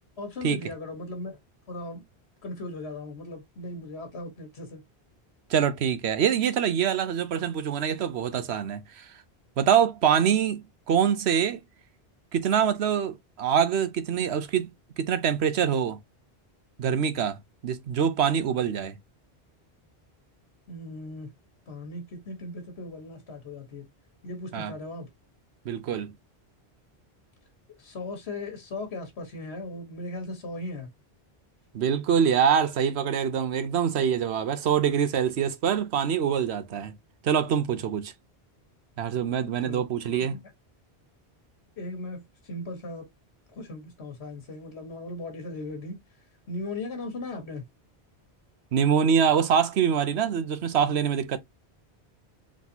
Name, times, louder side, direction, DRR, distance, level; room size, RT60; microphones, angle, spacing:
voice 1, 0.2-1.4 1.7-2.0 2.4-4.8 20.7-21.3 21.7-23.9 24.2-25.1 27.8-30.9 39.6-39.8 40.3-40.5 41.8-43.1 43.5-46.0 46.5-47.6, left 2 dB, 80° left, 1.7 m, -37 dB
voice 2, 5.5-9.1 9.6-11.6 12.3-14.7 15.0-16.0 16.8-17.4 17.6-19.0 24.5-24.7 25.7-26.1 31.7-36.9 37.2-38.1 39.0-40.4 48.7-51.4, right 8 dB, 90° right, 1.0 m, -24 dB
4.1 x 3.7 x 2.7 m
omnidirectional pair, 1.1 m